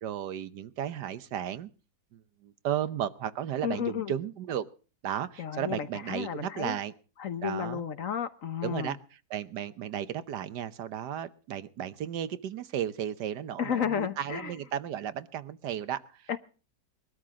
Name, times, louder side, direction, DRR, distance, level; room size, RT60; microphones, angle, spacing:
voice 1, 0.0-1.7 2.1-4.7 5.0-6.9 7.4-7.8 8.6-9.0 9.3-16.4, right 10 dB, 85° right, 1.5 m, -34 dB
voice 2, 3.6-4.1 5.4-6.8 7.2-9.0 13.6-14.5 16.3-16.4, left 8 dB, 55° left, 1.3 m, -32 dB
21.5 x 13.0 x 3.7 m
omnidirectional pair, 1.8 m